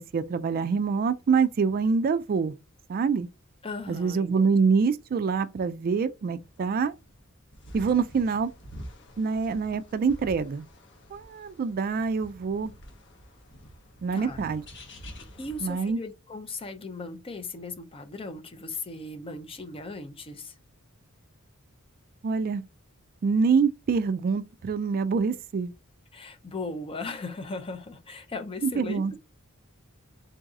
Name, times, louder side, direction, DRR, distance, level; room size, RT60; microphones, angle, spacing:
voice 1, 0.0-2.6 2.9-3.3 3.9-6.9 7.7-8.5 9.2-10.7 11.1-12.7 14.0-14.6 15.6-16.0 22.2-22.6 23.2-25.7 28.6-29.1, right 5 dB, 45° right, 0.3 m, -25 dB
voice 2, 3.6-4.6 14.1-14.4 15.4-20.5 26.1-29.2, left 3 dB, 25° left, 0.5 m, -37 dB
sound 1, 6.4-15.9, equal, 55° left, 1.0 m, -47 dB
3.8 x 2.7 x 3.5 m
head